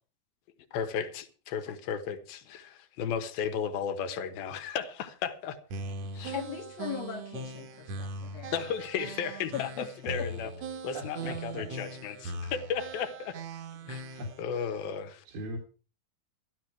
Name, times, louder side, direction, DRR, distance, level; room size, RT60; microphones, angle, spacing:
voice 1, 0.7-5.6 6.1-6.3 8.5-10.5 10.8-13.4 13.9-15.2, left 7 dB, 85° left, 3.2 m, -34 dB
sound 1, 5.7-14.4, right 2 dB, 60° right, 1.9 m, -40 dB
voice 2, 6.3-8.5 9.5-9.9 10.2-10.3, left 9 dB, 60° left, 2.0 m, -39 dB
voice 3, 10.9-11.7 13.5-13.6 14.2-14.8 15.3-15.6, equal, 80° right, 3.8 m, -41 dB
13.5 x 13.0 x 4.7 m
omnidirectional pair, 4.2 m